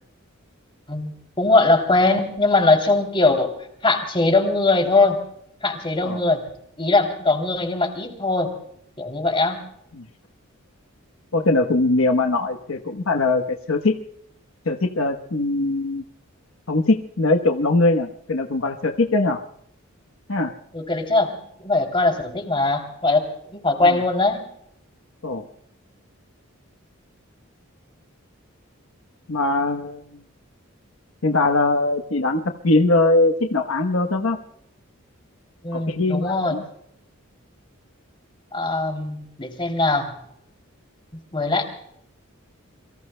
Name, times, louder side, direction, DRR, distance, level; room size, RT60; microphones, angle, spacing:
voice 1, 0.9-3.5 3.8-5.2 5.6-6.4 6.8-8.5 9.0-9.6 20.7-21.3 21.6-24.4 35.6-36.6 38.5-40.2 41.3-41.6, left 2 dB, 25° left, 4 dB, 3.0 m, -21 dB
voice 2, 11.3-14.0 14.6-16.0 16.7-19.4 20.3-20.5 23.8-24.0 25.2-25.5 29.3-30.2 31.2-34.4 35.7-36.6, left 2 dB, 75° left, 6 dB, 1.1 m, -21 dB
27.5 x 23.5 x 2.2 m, 0.71 s
head